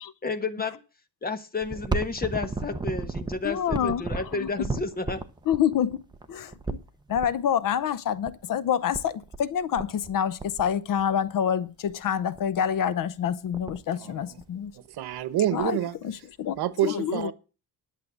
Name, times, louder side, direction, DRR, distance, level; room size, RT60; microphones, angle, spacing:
voice 1, 0.2-0.8 1.2-5.3, left 4 dB, 25° left, 1.2 m, -31 dB
sound 1, 1.6-7.3 8.2-8.3 8.6-8.7 8.9-9.4 9.8-10.1 10.4-11.3 11.8-12.0 12.4-12.6 13.0-13.1 13.3-13.9 14.4-15.2 15.6-15.7 16.6-16.7, right 3 dB, 10° right, 0.8 m, -33 dB
voice 2, 3.4-4.0 4.3-4.5 5.5-6.0 6.3-6.8 7.1-14.7 15.5-15.8 16.0-16.5 16.8-17.3, left 9 dB, 55° left, 0.8 m, -27 dB
voice 3, 14.0-14.4 14.7-15.9 16.6-17.3, right 12 dB, 75° right, 1.2 m, -28 dB
11.0 x 7.5 x 7.0 m
cardioid pair, 155°, 38 cm